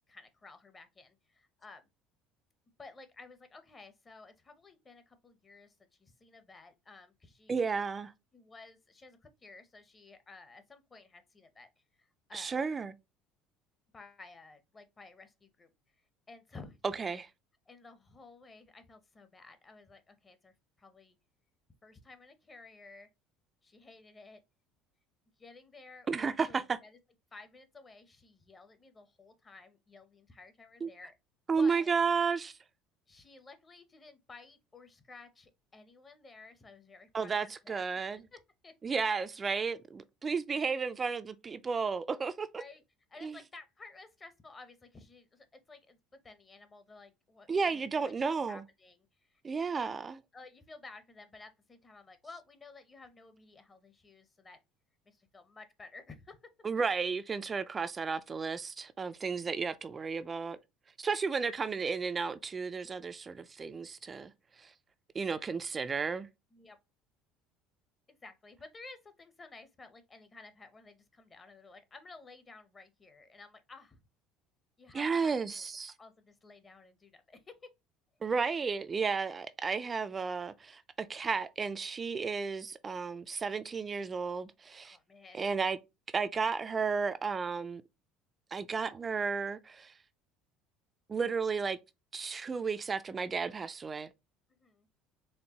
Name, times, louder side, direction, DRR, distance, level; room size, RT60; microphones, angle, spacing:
voice 1, 0.1-1.9 2.8-7.6 8.3-11.7 12.0-12.5 13.9-15.7 16.3-17.2 17.7-21.2 21.8-23.1 23.6-24.4 25.4-27.0 27.3-31.1 31.6-31.9 33.1-37.9 38.3-38.7 42.6-42.8 43.1-49.4 49.7-49.9 50.3-54.6 55.1-56.4 59.4-59.6 66.5-66.8 68.1-74.0 74.8-75.7 76.0-77.7 84.8-85.4 94.6-94.9, left 3 dB, 20° left, 0.7 m, -54 dB
voice 2, 7.5-8.1 12.3-12.9 17.0-17.3 26.1-26.8 30.8-30.9 31.5-32.6 37.1-38.2 38.8-42.6 43.2-43.3 47.5-48.6 49.4-50.2 56.6-60.6 61.0-64.3 64.6-64.7 65.1-66.3 74.9-75.9 78.2-85.0 85.3-85.8 86.1-87.8 88.5-89.9 91.1-91.8 92.1-94.1, right 5 dB, 25° right, 0.3 m, -33 dB
4.4 x 3.1 x 2.9 m
cardioid pair, 125°, 0 cm